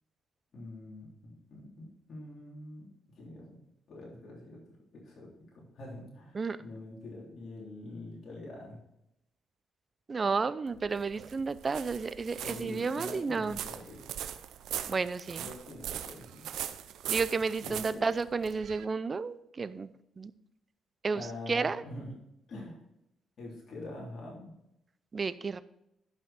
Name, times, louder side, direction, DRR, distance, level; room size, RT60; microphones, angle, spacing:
voice 1, 0.5-2.9 3.2-3.6 3.9-4.6 4.9-5.3 5.5-8.8 12.4-14.0 15.4-16.5 17.6-18.0 21.1-22.2 22.5-22.8 23.4-24.6, left 2 dB, 55° left, -4 dB, 3.3 m, -45 dB
voice 2, 10.1-13.6 14.9-15.5 17.1-19.9 20.2-20.3 21.0-21.8 25.1-25.6, right 4 dB, 35° right, 15 dB, 0.5 m, -32 dB
sound 1, 10.7-18.8, right 10 dB, 80° right, 0.6 m, -40 dB
11.5 x 5.7 x 4.3 m, 0.82 s
cardioid pair, 90°, 0 cm